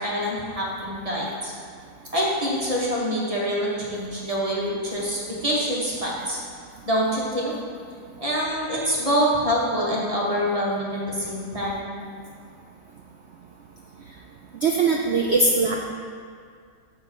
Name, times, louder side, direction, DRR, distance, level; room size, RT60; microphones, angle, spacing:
voice 1, 0.0-1.5 2.1-6.4 6.8-7.5 8.2-11.9, equal, 25° right, -5 dB, 1.2 m, -25 dB
voice 2, 14.6-15.8, right 3 dB, 75° right, 1 dB, 0.6 m, -20 dB
9.3 x 3.2 x 6.8 m, 2.1 s
omnidirectional pair, 1.7 m